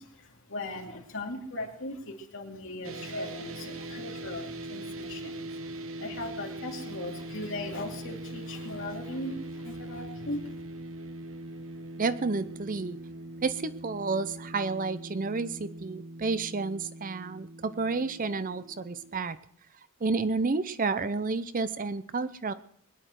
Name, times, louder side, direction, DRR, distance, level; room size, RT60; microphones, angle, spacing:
voice 1, 0.0-10.6, left 1 dB, 60° left, 1 dB, 2.7 m, -39 dB
sound 1, 2.8-19.2, right 1 dB, 60° right, 1.0 m, -41 dB
voice 2, 12.0-13.0 13.4-19.4 20.0-22.5, right 4 dB, 35° right, 14 dB, 0.6 m, -30 dB
21.5 x 10.0 x 4.6 m, 0.62 s
head